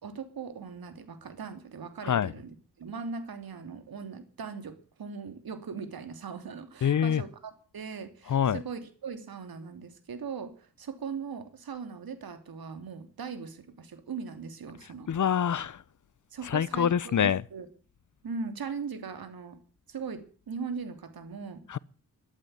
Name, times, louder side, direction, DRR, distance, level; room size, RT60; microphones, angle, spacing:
voice 1, 0.0-15.1 16.3-17.7 18.2-19.6 19.9-21.6, right 5 dB, 65° right, 3.0 m, -39 dB
voice 2, 2.0-2.3 6.8-7.2 8.2-8.6 14.8-15.8 16.4-17.4 21.7-21.8, left 8 dB, 50° left, 0.8 m, -26 dB
13.0 x 11.5 x 9.6 m
supercardioid pair, 45°, 38 cm